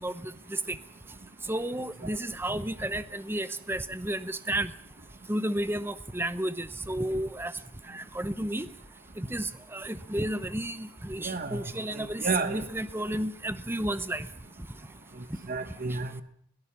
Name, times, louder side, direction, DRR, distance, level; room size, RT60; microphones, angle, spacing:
voice 1, 1.5-4.7 5.3-7.5 7.9-8.7 9.2-14.3, right 1 dB, 10° right, 13 dB, 0.8 m, -32 dB
voice 2, 11.2-11.6 11.9-12.6 15.5-16.2, right 3 dB, 40° right, 9 dB, 0.9 m, -31 dB
22.0 x 17.5 x 7.2 m, 0.70 s
head